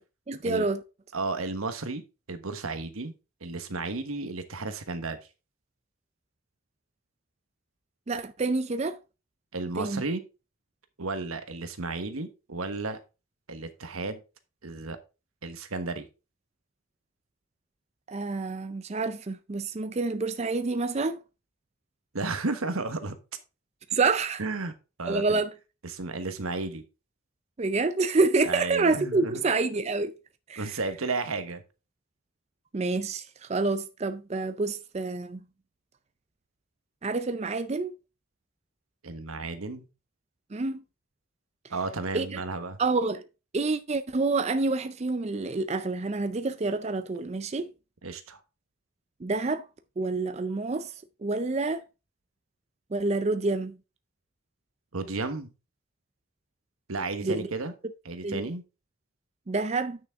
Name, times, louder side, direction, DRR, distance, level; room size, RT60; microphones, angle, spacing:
voice 1, 0.3-0.8 8.1-9.0 9.8-10.0 18.1-21.2 23.9-24.4 25.1-25.5 27.6-30.1 30.5-30.8 32.7-35.4 37.0-37.9 40.5-40.8 42.1-42.4 42.8-43.2 43.5-47.7 49.2-49.7 50.0-50.9 51.2-51.8 52.9-53.8 57.2-57.5 58.2-58.5 59.5-60.0, right 3 dB, 30° right, 0.4 m, -28 dB
voice 2, 1.1-2.0 2.3-3.1 3.4-5.2 9.5-10.2 11.0-13.0 13.5-14.2 14.6-15.0 15.4-16.1 22.1-23.1 24.4-24.7 25.0-25.4 25.8-26.8 28.5-29.5 30.6-31.6 39.0-39.9 41.7-42.8 48.0-48.4 54.9-55.5 56.9-57.7 58.0-58.6, right 3 dB, 85° right, 1.2 m, -33 dB
8.9 x 6.3 x 3.6 m
head